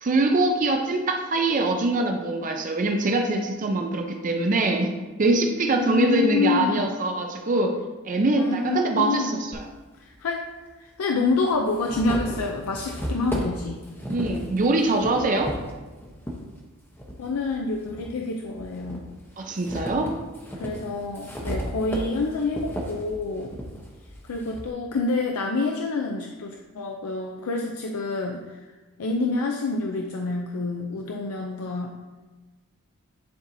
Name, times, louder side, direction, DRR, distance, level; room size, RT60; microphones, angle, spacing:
voice 1, 0.0-4.9 5.2-7.7 8.0-9.7 14.1-15.5 19.4-20.1, right 2 dB, 35° right, 4 dB, 0.5 m, -23 dB
voice 2, 5.8-6.9 8.3-9.4 10.0-10.5 10.8-13.8 17.2-19.0 20.6-23.5 24.2-28.6 29.0-31.9, left 3 dB, 80° left, 2 dB, 0.5 m, -27 dB
sound 1, 9.5-9.6 10.7-10.8 11.3-16.4 16.9-18.1 18.6-24.7, equal, 10° left, 0.7 m, -34 dB
10.0 x 4.1 x 2.6 m, 1.2 s
head